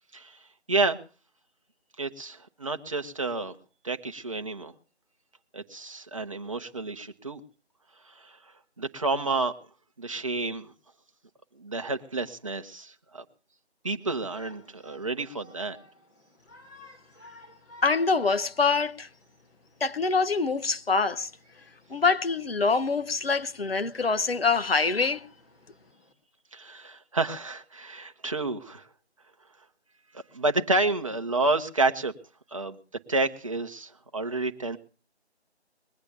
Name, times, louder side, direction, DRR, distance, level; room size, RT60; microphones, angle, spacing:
voice 1, 2.0-3.5 3.8-4.7 5.5-7.4 8.1-8.4 8.8-9.5 10.0-10.7 11.6-13.2 13.8-15.8 26.5-28.9 30.1-32.1 32.5-32.8 33.1-34.8, right 3 dB, 30° right, 1.0 m, -30 dB
Shout, 14.0-26.1, left 2 dB, 15° left, 1.9 m, -54 dB
voice 2, 17.8-19.1 19.8-21.3 21.9-25.2, left 4 dB, 60° left, 0.9 m, -25 dB
21.0 x 8.8 x 6.8 m
figure-of-eight pair, 160°, 34 cm